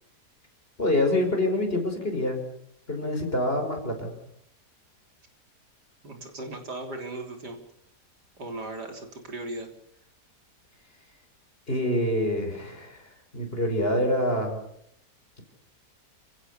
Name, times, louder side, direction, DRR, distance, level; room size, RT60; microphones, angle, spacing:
voice 1, 0.8-2.4 2.9-4.1 11.7-14.6, left 1 dB, 35° left, 4 dB, 5.5 m, -26 dB
voice 2, 6.0-7.6 8.4-9.7, right 2 dB, 75° right, 4 dB, 4.3 m, -37 dB
30.0 x 16.5 x 7.0 m, 0.73 s
omnidirectional pair, 1.8 m